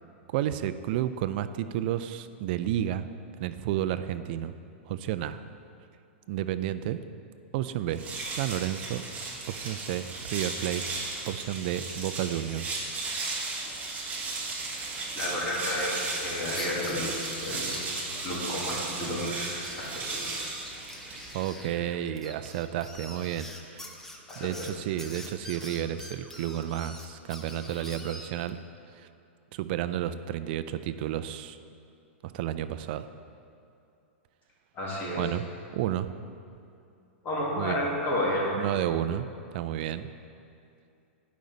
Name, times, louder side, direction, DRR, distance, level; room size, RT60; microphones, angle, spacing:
voice 1, 0.3-3.1 3.4-4.5 4.9-5.4 6.3-7.0 7.5-9.0 9.5-10.8 11.3-12.9 21.3-23.9 24.4-28.6 29.0-29.1 29.5-31.6 32.2-33.1 35.1-35.4 35.7-36.1 37.6-37.8 38.6-39.3 39.5-40.1, right 12 dB, 50° right, 12 dB, 0.4 m, -31 dB
sound 1, 7.9-21.6, right 3 dB, 20° right, 1.3 m, -35 dB
voice 2, 15.1-17.1 17.4-17.8 18.2-20.5 24.3-24.7 34.7-35.3 37.2-38.5, left 1 dB, 30° left, -5 dB, 2.0 m, -31 dB
sound 2, 16.3-18.4 18.7-18.8 19.0-19.1 19.4-28.5, left 1 dB, 5° left, 0.6 m, -45 dB
10.5 x 5.2 x 4.0 m, 2.6 s
hypercardioid pair, 140°, 7 cm